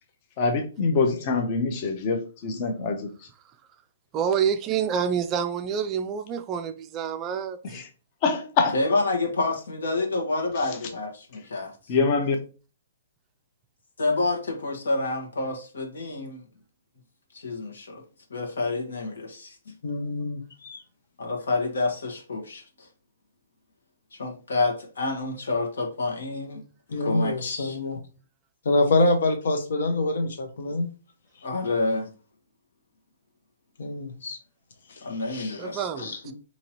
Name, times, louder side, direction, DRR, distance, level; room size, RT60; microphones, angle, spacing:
voice 1, 0.4-3.1 7.7-7.9 8.2-8.8 11.9-12.4, left 4 dB, 35° left, 0.6 m, -24 dB
voice 2, 4.1-7.8 35.6-36.3, right 7 dB, 20° right, 0.3 m, -28 dB
voice 3, 8.7-11.7 14.0-16.4 17.3-18.0 18.3-19.6 21.2-22.9 24.1-26.6 27.0-27.8 31.4-32.1 35.0-35.9, left 3 dB, 90° left, 1.3 m, -28 dB
voice 4, 19.8-20.8 26.9-28.0 28.6-30.9 33.8-34.4 34.9-35.0 35.3-35.6 36.0-36.2, left 2 dB, 70° left, 0.9 m, -26 dB
4.2 x 2.8 x 2.9 m
hypercardioid pair, 160°, 0 cm